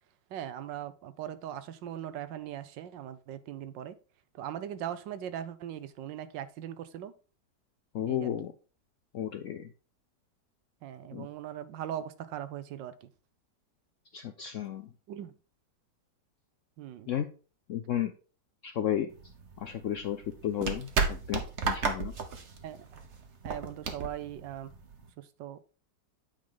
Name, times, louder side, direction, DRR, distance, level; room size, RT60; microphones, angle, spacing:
voice 1, 0.3-4.0 4.3-7.1 8.1-8.3 10.8-13.1 15.1-15.3 16.8-17.1 22.6-23.0 23.4-24.7 25.2-25.7, right 10 dB, 85° right, 1.4 m, -40 dB
voice 2, 7.9-8.5 9.1-9.7 11.1-11.3 14.1-14.9 17.1-17.2 17.7-18.1 18.6-19.1 19.6-22.1, left 10 dB, 70° left, 0.7 m, -33 dB
sound 1, 19.1-25.1, right 5 dB, 45° right, 1.2 m, -34 dB
8.6 x 5.2 x 3.8 m
omnidirectional pair, 1.9 m